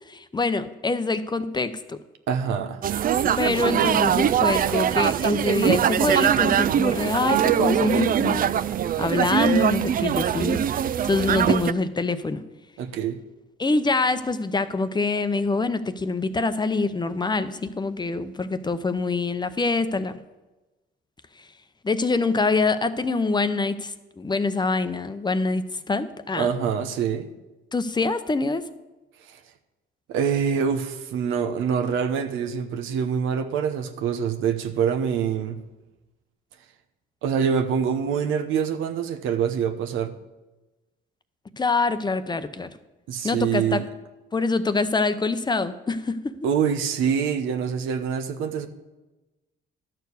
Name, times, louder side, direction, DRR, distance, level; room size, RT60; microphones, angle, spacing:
voice 1, 0.1-2.0 3.4-8.4 9.0-12.4 13.6-20.2 21.8-26.5 27.7-28.6 41.6-42.7 43.2-43.8 44.3-46.3, left 3 dB, 20° left, 0.7 m, -25 dB
voice 2, 2.3-2.8 12.8-13.2 26.3-27.3 29.3-29.4 30.1-35.6 37.2-40.1 43.1-43.8 46.4-48.7, right 7 dB, 90° right, 0.9 m, -25 dB
sound 1, 2.8-11.7, right 9 dB, 45° right, 0.4 m, -22 dB
12.0 x 4.6 x 8.2 m
cardioid pair, 90°, 20 cm